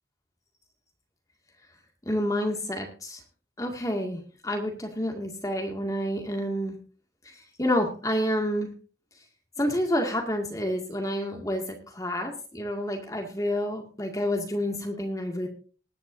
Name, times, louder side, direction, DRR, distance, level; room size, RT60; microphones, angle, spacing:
voice 1, 2.0-3.2 3.6-6.8 7.2-8.7 9.6-15.5, equal, 20° left, 2 dB, 2.1 m, -29 dB
20.5 x 10.0 x 2.7 m, 0.37 s
head